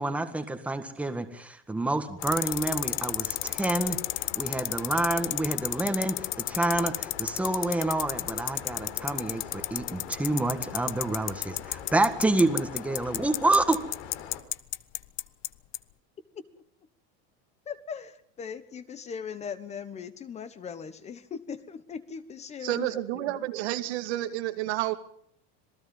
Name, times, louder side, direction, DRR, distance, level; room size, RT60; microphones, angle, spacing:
voice 1, 0.0-13.8, right 2 dB, 5° right, 7 dB, 1.7 m, -28 dB
sound 1, 2.2-14.4, left 9 dB, 80° left, 4.5 m, -43 dB
sound 2, 2.2-15.5 15.7-15.8, left 18 dB, 40° left, 0.7 m, -30 dB
voice 2, 17.7-23.5, left 6 dB, 20° left, 13 dB, 1.2 m, -39 dB
voice 3, 22.6-25.0, right 14 dB, 85° right, 8 dB, 2.4 m, -30 dB
27.0 x 19.0 x 5.4 m, 0.66 s
cardioid pair, 165°, 32 cm